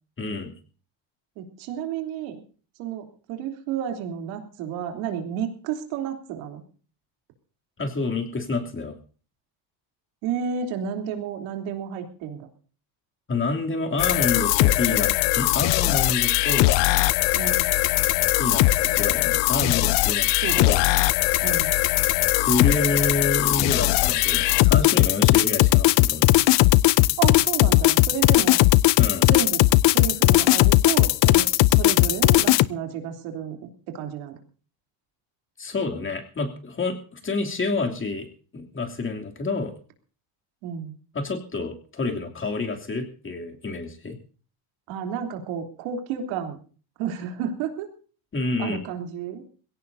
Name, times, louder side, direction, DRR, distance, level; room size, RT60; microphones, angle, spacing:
voice 1, 0.2-0.5 7.8-9.0 13.3-16.8 18.4-20.3 20.6-20.8 22.4-26.3 29.0-29.3 35.6-39.7 41.1-44.2 48.3-48.8, left 3 dB, 25° left, 2 dB, 3.0 m, -28 dB
voice 2, 1.4-2.4 2.8-6.6 10.2-12.5 17.3-17.7 20.4-20.7 21.4-21.8 27.2-28.6 29.3-34.4 40.6-40.9 44.9-46.6 47.0-47.9 48.6-49.4, right 8 dB, 85° right, 4 dB, 3.4 m, -31 dB
sound 1, 14.0-32.7, left 19 dB, 65° left, 0.6 m, -19 dB
22.0 x 17.0 x 2.8 m, 0.39 s
cardioid pair, 110°, 46 cm